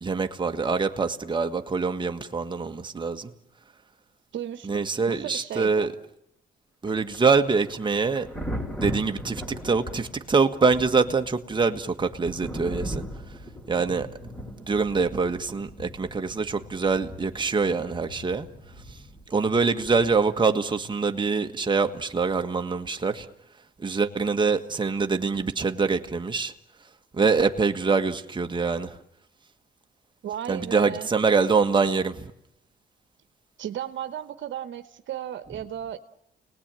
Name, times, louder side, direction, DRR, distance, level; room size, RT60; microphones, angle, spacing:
voice 1, 0.0-3.3 4.6-5.9 6.8-8.3 8.8-13.0 13.7-14.1 14.7-18.5 18.9-19.0 19.3-23.3 23.8-26.5 27.1-29.0 30.5-32.3, right 4 dB, 25° right, 1.5 m, -24 dB
voice 2, 4.3-5.9 30.2-31.1 33.6-36.0, right 10 dB, 70° right, 1.2 m, -35 dB
Thunder, 6.9-20.5 22.2-22.4, equal, 10° left, 4.3 m, -39 dB
29.5 x 19.0 x 9.0 m
cardioid pair, 90°, 20 cm